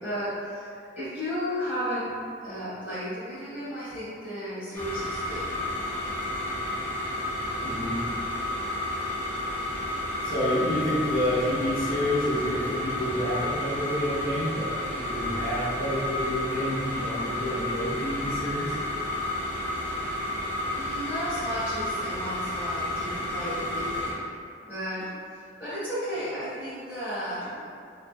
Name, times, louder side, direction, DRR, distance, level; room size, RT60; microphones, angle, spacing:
voice 1, 0.0-2.1 2.4-5.5 20.6-24.2 24.6-27.7, equal, 10° right, -16 dB, 1.3 m, -34 dB
sound 1, 4.7-24.1, left 1 dB, 10° left, 0.4 m, -31 dB
voice 2, 7.6-8.0 10.2-18.7, equal, 50° left, -11 dB, 0.6 m, -29 dB
2.5 x 2.5 x 2.2 m, 2.3 s
head